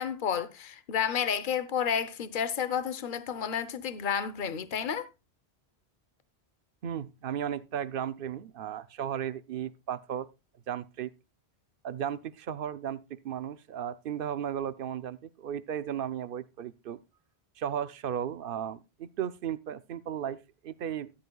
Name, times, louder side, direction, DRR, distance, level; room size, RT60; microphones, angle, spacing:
voice 1, 0.0-5.1, left 7 dB, 55° left, 1.0 m, -31 dB
voice 2, 6.8-10.3 10.7-11.1 11.8-17.0 17.6-21.1, right 9 dB, 60° right, 0.9 m, -35 dB
13.0 x 11.0 x 2.3 m
omnidirectional pair, 1.1 m